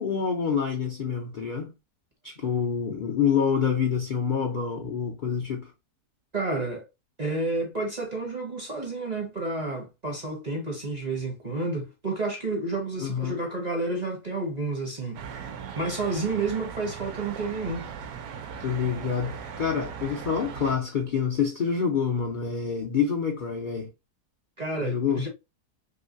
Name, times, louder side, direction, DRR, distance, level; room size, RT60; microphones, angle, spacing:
voice 1, 0.0-1.7 2.2-5.7 13.0-13.4 18.6-23.9 24.8-25.3, left 6 dB, 90° left, 0.4 m, -27 dB
voice 2, 6.3-6.9 7.2-15.2 15.8-17.9 24.6-25.3, right 3 dB, 45° right, 0.5 m, -30 dB
sound 1, 15.1-20.8, right 6 dB, 75° right, 1.0 m, -39 dB
3.1 x 3.0 x 2.5 m
omnidirectional pair, 1.7 m